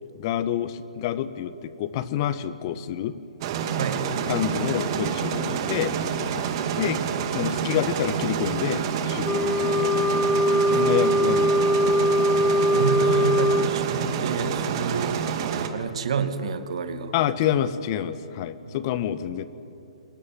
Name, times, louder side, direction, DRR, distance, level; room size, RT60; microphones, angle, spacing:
voice 1, 0.1-3.1 4.3-5.9 6.8-7.0 7.3-10.0 10.6-11.9 17.1-19.4, left 11 dB, 40° left, 13 dB, 1.3 m, -28 dB
sound 1, 3.4-15.7, right 7 dB, 45° right, 2.4 m, -28 dB
Wind instrument woodwind instrument, 9.2-13.7, equal, 10° left, 1.6 m, -21 dB
voice 2, 12.7-15.2 15.7-17.6 18.7-18.8, right 5 dB, 65° right, 8 dB, 2.2 m, -29 dB
24.0 x 19.5 x 9.3 m, 2.8 s
hypercardioid pair, 135°, 4 cm